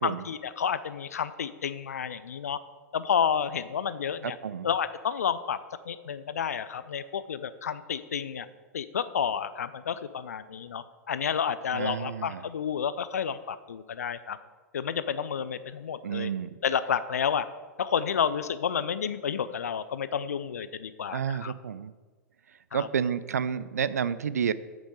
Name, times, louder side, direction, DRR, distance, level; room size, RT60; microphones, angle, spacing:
voice 1, 0.0-2.6 2.9-4.4 4.6-5.6 5.9-8.5 8.7-14.4 14.7-16.3 16.6-17.5 17.8-21.5 22.7-22.9, left 7 dB, 65° left, 14 dB, 0.6 m, -30 dB
voice 2, 4.2-4.7 11.7-12.5 16.0-16.6 21.1-21.9 22.5-24.5, right 7 dB, 70° right, 16 dB, 0.4 m, -30 dB
8.8 x 8.3 x 4.8 m, 1.3 s
figure-of-eight pair, 95°, 9 cm